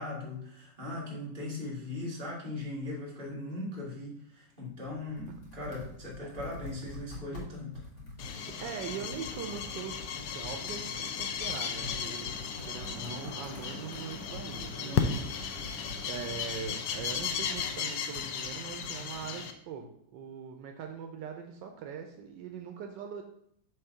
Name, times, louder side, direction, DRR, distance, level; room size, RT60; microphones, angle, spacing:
voice 1, 0.0-7.8 14.8-15.4, left 2 dB, 30° right, -4 dB, 2.1 m, -39 dB
Computer keyboard, 4.7-19.3, left 1 dB, 40° left, 2.1 m, -47 dB
sound 1, 8.2-19.5, left 7 dB, 80° left, 1.2 m, -35 dB
voice 2, 8.3-12.4 12.6-15.6 16.1-23.2, right 6 dB, 80° right, 4 dB, 1.3 m, -42 dB
sound 2, 9.9-18.6, right 2 dB, 60° right, 1.2 m, -51 dB
5.8 x 3.3 x 5.5 m, 0.69 s
omnidirectional pair, 1.9 m